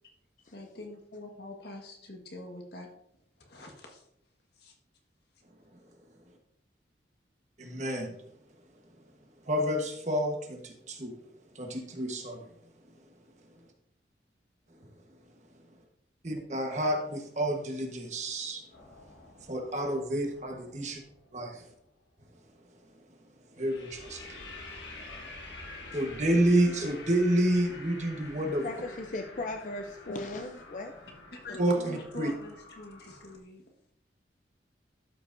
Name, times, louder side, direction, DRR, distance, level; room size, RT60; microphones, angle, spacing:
voice 1, 0.5-2.9 3.4-4.0 4.6-4.7 31.3-33.6, left 2 dB, 60° left, 2 dB, 1.5 m, -45 dB
voice 2, 7.6-8.1 9.5-11.1 11.5-12.5 16.2-18.6 19.5-21.0 21.3-21.6 23.6-24.4 25.9-28.7 31.6-32.3, right 1 dB, 40° right, 3 dB, 1.2 m, -29 dB
sound 1, 18.7-21.6 23.6-33.4, left 2 dB, 85° left, 1.4 m, -48 dB
voice 3, 28.6-30.9 31.5-31.9, left 2 dB, 45° left, 5 dB, 0.5 m, -37 dB
12.5 x 5.7 x 2.6 m, 0.74 s
head